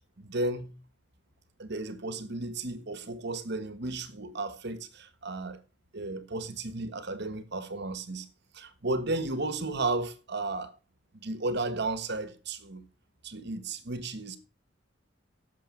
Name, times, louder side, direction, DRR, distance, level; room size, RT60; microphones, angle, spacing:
voice 1, 0.2-0.7 1.6-5.6 5.9-8.3 8.5-10.7 11.1-12.8 13.2-14.4, right 2 dB, 60° right, 1.5 m, -34 dB
11.5 x 7.3 x 6.2 m
head